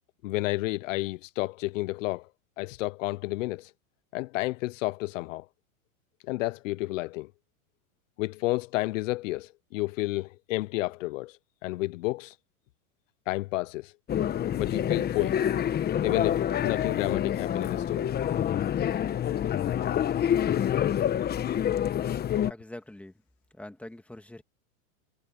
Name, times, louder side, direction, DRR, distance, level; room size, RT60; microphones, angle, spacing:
voice 1, 0.2-2.3 2.6-3.7 4.1-5.5 6.2-7.3 8.2-12.4 13.3-13.9 14.6-15.4 16.0-18.1, left 20 dB, 60° left, 0.8 m, -31 dB
sound 1, 14.1-22.5, left 10 dB, 20° left, 1.2 m, -27 dB
voice 2, 22.4-23.1 23.5-24.4, left 1 dB, 5° left, 2.4 m, -44 dB
hypercardioid pair, 120°, 44 cm